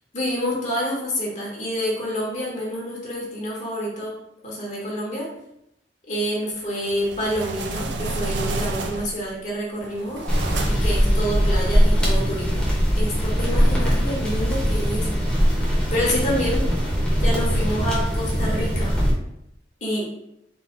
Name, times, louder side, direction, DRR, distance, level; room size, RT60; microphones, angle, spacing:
voice 1, 0.1-4.2 4.4-5.3 6.1-10.2 10.7-15.1 15.9-16.7 17.2-19.0 19.8-20.1, equal, 45° left, -4 dB, 1.3 m, -28 dB
sound 1, 6.8-9.3 9.8-11.0, right 2 dB, 75° right, 0.5 m, -30 dB
sound 2, 10.3-19.1, equal, 5° left, 1.2 m, -21 dB
4.0 x 2.9 x 3.8 m, 0.79 s
head